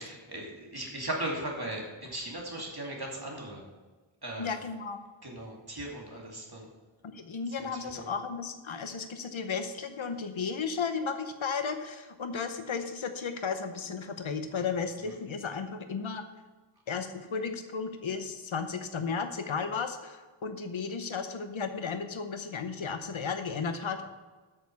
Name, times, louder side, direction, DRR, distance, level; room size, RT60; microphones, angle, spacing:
voice 1, 0.0-3.6 4.2-4.6 5.2-6.7 7.5-7.7 7.9-8.1 15.0-15.1, right 1 dB, 50° right, -2 dB, 2.7 m, -38 dB
voice 2, 4.4-5.0 7.1-16.2 16.9-24.1, left 5 dB, 80° left, 7 dB, 0.8 m, -34 dB
8.7 x 6.7 x 7.1 m, 1.3 s
wide cardioid pair, 40°, 47 cm